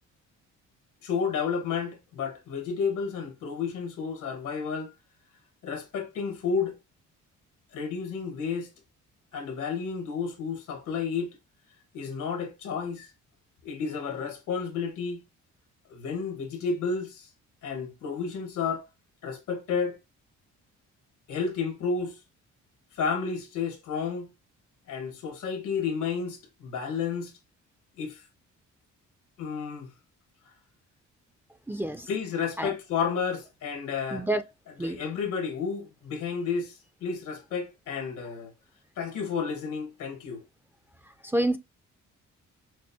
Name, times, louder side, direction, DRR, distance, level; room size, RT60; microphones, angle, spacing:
voice 1, 1.0-4.9 5.6-6.8 7.7-8.7 9.3-11.4 11.9-13.1 13.6-15.2 15.9-17.3 17.6-18.8 19.2-20.0 21.3-22.2 22.9-24.3 24.9-27.3 28.0-28.2 29.4-29.9 32.1-34.3 34.8-36.7 37.0-38.5 39.0-40.4, left 5 dB, 80° left, 1.4 m, -31 dB
voice 2, 31.7-32.1 32.6-32.7 34.1-34.4 34.8-35.0 41.2-41.6, right 1 dB, 5° right, 0.4 m, -28 dB
6.2 x 2.1 x 2.7 m
cardioid pair, 90°, 30 cm